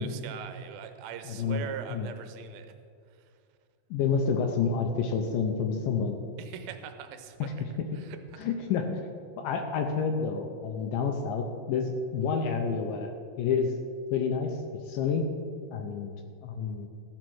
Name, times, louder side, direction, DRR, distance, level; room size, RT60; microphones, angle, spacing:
voice 1, 0.0-2.7 6.4-7.5 7.9-8.4, right 8 dB, 80° right, 7 dB, 2.4 m, -41 dB
voice 2, 1.3-2.1 3.9-6.2 7.4-7.5 8.4-8.8 9.4-13.7 14.1-14.6 14.9-15.3 15.7-16.1 16.4-16.9, left 5 dB, 75° left, 4 dB, 2.2 m, -29 dB
14.5 x 5.3 x 6.1 m, 2.3 s
omnidirectional pair, 4.3 m